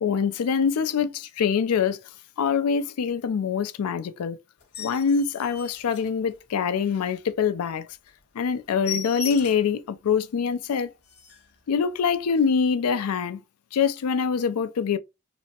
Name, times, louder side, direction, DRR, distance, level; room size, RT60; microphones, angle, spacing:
voice 1, 0.0-2.0 2.4-4.4 4.8-7.9 8.3-10.9 11.7-13.4 13.7-15.0, left 6 dB, 80° left, 0.4 m, -24 dB
sound 1, 4.6-6.7 7.2-7.3 7.7-7.8 8.1-8.2 8.5-9.8 10.3-10.4 10.7-10.8 11.0-11.5 12.3-12.5, left 8 dB, 50° left, 0.8 m, -38 dB
3.2 x 2.0 x 2.7 m
head